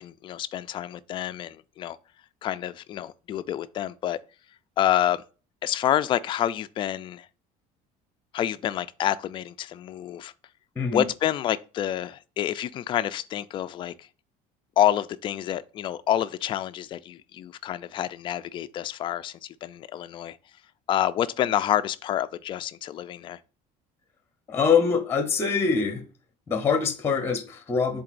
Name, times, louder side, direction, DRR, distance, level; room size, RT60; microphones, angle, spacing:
voice 1, 0.0-2.0 2.4-4.2 4.8-5.2 5.6-7.3 8.3-10.3 10.9-14.1 14.8-20.4 20.9-23.4, left 11 dB, 30° left, 0.4 m, -28 dB
voice 2, 24.5-26.0 26.5-28.0, left 5 dB, 15° left, 0.8 m, -24 dB
10.5 x 3.9 x 2.5 m
cardioid pair, 160°, 16 cm